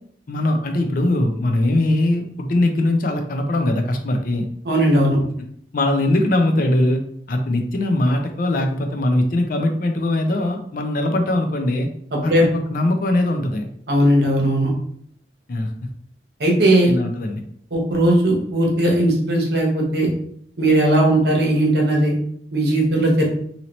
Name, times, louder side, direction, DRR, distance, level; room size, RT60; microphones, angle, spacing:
voice 1, 0.3-4.5 5.7-7.0 7.3-11.9 12.2-13.7 15.5-15.7 16.9-17.4, left 1 dB, 50° left, 4 dB, 0.5 m, -21 dB
voice 2, 4.7-5.2 12.3-12.4 13.9-14.7 16.4-16.9 17.7-20.1 20.6-22.1 22.5-23.2, right 1 dB, 65° right, -1 dB, 0.9 m, -17 dB
2.8 x 2.8 x 3.0 m, 0.65 s
head